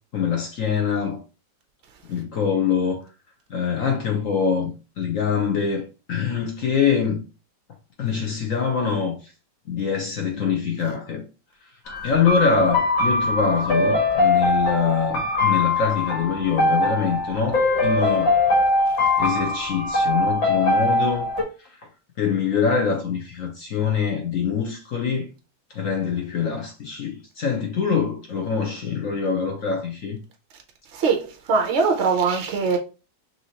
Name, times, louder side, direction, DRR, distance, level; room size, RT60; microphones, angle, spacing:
voice 1, 0.1-1.2 2.1-3.0 3.5-4.7 5.0-7.2 8.0-9.3 9.7-11.2 12.0-18.3 19.2-21.3 22.2-25.3 25.7-30.2, left 6 dB, 55° left, 1.0 m, -24 dB
sound 1, 11.9-21.4, left 2 dB, 85° left, 2.5 m, -22 dB
voice 2, 30.9-32.8, right 5 dB, 65° right, 0.7 m, -21 dB
5.5 x 3.0 x 2.9 m
omnidirectional pair, 2.0 m